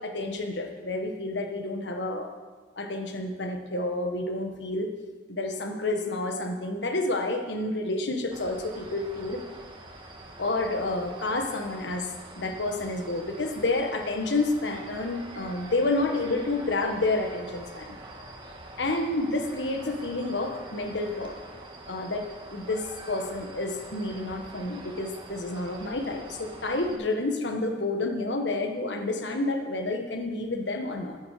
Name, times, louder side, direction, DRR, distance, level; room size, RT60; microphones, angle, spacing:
voice 1, 0.0-2.3 2.8-4.9 5.3-9.4 10.4-18.0 18.8-21.4 21.9-31.2, left 2 dB, 80° left, 4 dB, 1.3 m, -29 dB
sound 1, 8.3-26.9, right 1 dB, 30° right, 1.6 m, -45 dB
13.0 x 9.9 x 4.9 m, 1.4 s
head